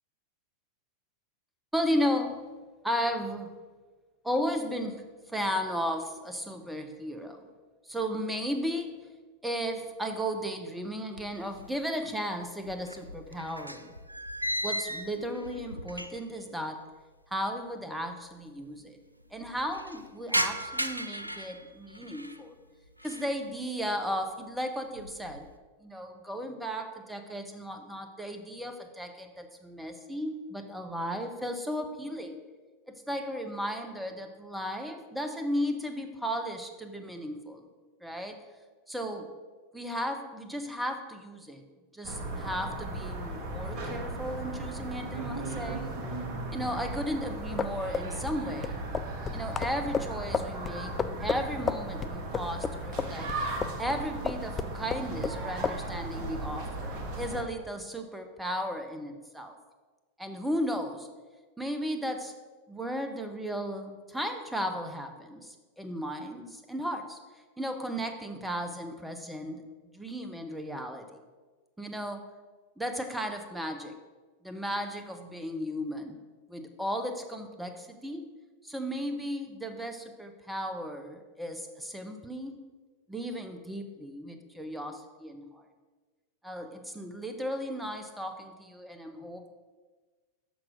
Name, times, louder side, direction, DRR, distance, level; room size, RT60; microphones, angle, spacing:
voice 1, 1.7-2.4 2.8-3.5 4.2-7.5 7.9-8.9 9.4-13.9 14.6-16.8 17.3-19.0 19.3-22.6 23.0-25.5 25.8-32.4 32.9-37.7 38.0-38.4 38.9-39.3 39.7-41.6 41.9-45.9 46.5-48.9 49.3-50.9 51.2-53.3 53.8-59.6 60.2-61.1 61.6-62.3 62.7-67.2 67.6-69.6 69.9-71.1 71.8-72.2 72.8-74.0 74.4-76.2 76.5-78.3 78.6-82.6 83.1-85.6 86.4-89.5, equal, 5° right, 5 dB, 0.8 m, -35 dB
sound 1, 11.2-12.0 12.3-16.4 16.7-16.8 17.7-17.8 17.9-18.0 18.3-18.8 19.2-22.4 22.8-23.4 23.8-24.2 24.6-25.5, equal, 85° right, 0.3 m, -36 dB
sound 2, 42.0-57.4, right 2 dB, 40° right, 1.1 m, -36 dB
sound 3, 47.5-54.0 54.3-55.4 55.6-55.8, left 5 dB, 20° left, 0.3 m, -32 dB
6.1 x 5.9 x 5.0 m, 1.3 s
figure-of-eight pair, 90°, 0 cm